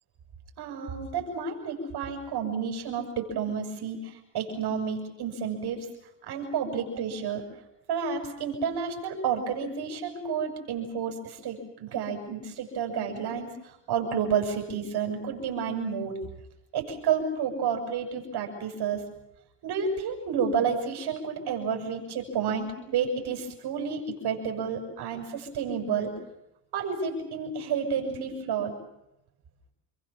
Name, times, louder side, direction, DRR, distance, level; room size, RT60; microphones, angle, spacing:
voice 1, 0.6-5.9 6.3-7.4 7.9-16.3 16.7-19.0 19.6-26.1 26.7-28.7, right 6 dB, 60° right, 2 dB, 7.9 m, -30 dB
29.5 x 23.5 x 7.4 m, 0.85 s
supercardioid pair, 85°, 43 cm